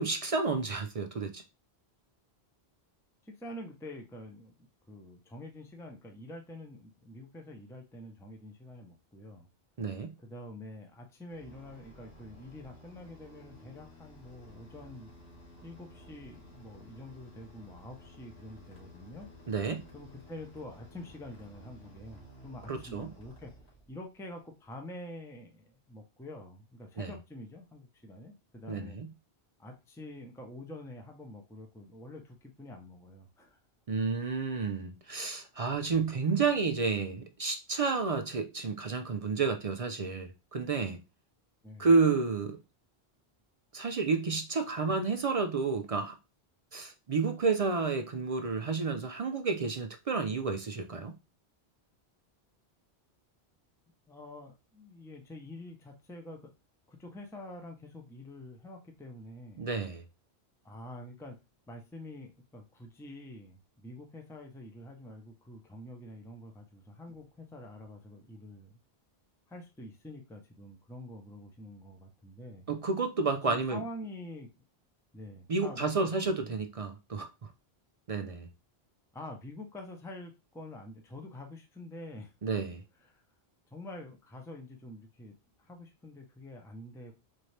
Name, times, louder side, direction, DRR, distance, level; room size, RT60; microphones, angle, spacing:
voice 1, 0.0-1.4 9.8-10.1 19.5-19.8 22.7-23.1 27.0-27.1 28.7-29.1 33.9-41.0 41.8-42.6 43.7-46.2 46.7-51.1 59.6-60.0 72.7-73.8 75.5-77.3 78.1-78.5 82.4-82.8, right 4 dB, 50° right, 0.4 m, -30 dB
voice 2, 3.2-9.5 10.2-15.1 15.6-19.3 19.9-23.5 23.9-29.0 29.6-33.6 41.6-41.9 54.1-56.5 56.9-59.7 60.6-61.4 61.7-68.8 69.5-72.6 73.5-74.5 75.1-76.6 79.1-82.3 83.0-83.2 83.7-87.1, left 1 dB, 5° left, 0.6 m, -47 dB
sound 1, 11.3-24.1, left 1 dB, 85° left, 2.2 m, -54 dB
4.2 x 2.7 x 3.2 m
omnidirectional pair, 1.1 m